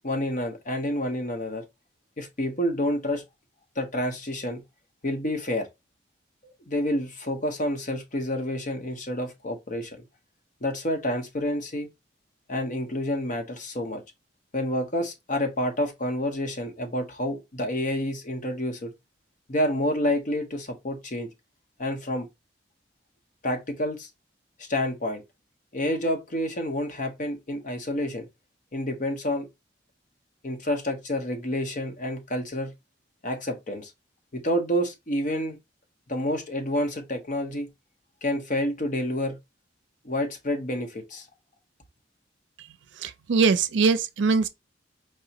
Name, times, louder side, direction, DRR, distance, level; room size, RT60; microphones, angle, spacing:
voice 1, 0.0-1.6 2.2-3.2 3.8-4.6 5.0-5.7 6.4-10.0 10.6-11.9 12.5-14.0 14.5-18.9 19.5-21.3 21.8-22.3 23.4-24.1 24.6-25.2 25.7-28.3 28.7-29.5 30.4-32.7 33.2-33.9 34.3-35.6 36.1-37.7 38.2-39.4 40.0-41.3, left 1 dB, 45° left, 1.0 m, -28 dB
voice 2, 42.9-44.5, right 5 dB, 80° right, 0.5 m, -22 dB
4.7 x 2.9 x 2.8 m
head